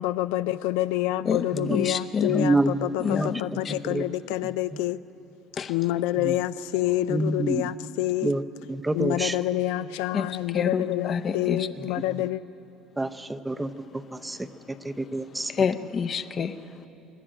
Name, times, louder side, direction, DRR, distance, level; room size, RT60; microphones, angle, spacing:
voice 1, 0.0-5.0 5.7-8.4 8.9-12.4, left 14 dB, 90° left, 14 dB, 0.4 m, -27 dB
voice 2, 1.3-2.5 3.0-3.4 3.6-3.7 5.6-5.7 10.1-10.3 10.5-11.7 15.5-16.9, left 6 dB, 30° left, 10 dB, 0.7 m, -28 dB
voice 3, 2.3-3.3 3.7-4.1 4.4-4.8 6.2-6.4 7.1-7.6 8.2-8.4 8.7-9.4 11.8-12.2 13.0-14.5 14.8-15.7, right 2 dB, 10° right, 9 dB, 0.6 m, -28 dB
25.5 x 11.5 x 9.9 m, 2.9 s
cardioid pair, 150°, 0 cm